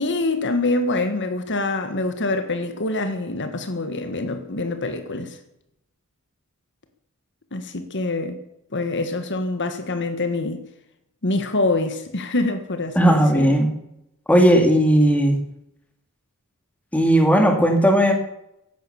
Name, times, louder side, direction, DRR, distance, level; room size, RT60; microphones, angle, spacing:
voice 1, 0.0-5.4 7.5-8.4 8.7-10.6 11.2-13.6, left 2 dB, 55° left, 1.6 m, -25 dB
voice 2, 13.0-13.7 14.3-15.4 16.9-18.1, equal, 5° left, 2.5 m, -16 dB
16.0 x 11.5 x 7.1 m
head